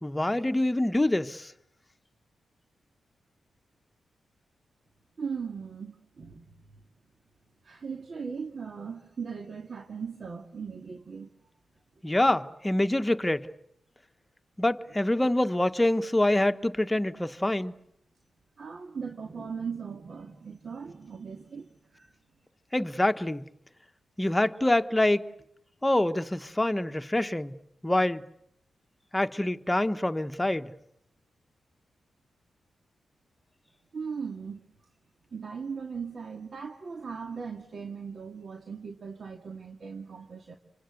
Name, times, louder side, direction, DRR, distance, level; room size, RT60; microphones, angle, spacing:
voice 1, 0.0-1.5 12.0-13.5 14.6-17.7 22.7-23.4 24.2-25.2 25.8-27.6 27.8-28.2 29.1-30.7, left 1 dB, 15° left, 1.3 m, -26 dB
voice 2, 5.2-6.5 7.6-11.3 18.6-22.1 33.9-34.6 35.3-40.6, right 5 dB, 55° right, 2.3 m, -38 dB
29.0 x 25.0 x 8.0 m
cardioid pair, 75°, 0 cm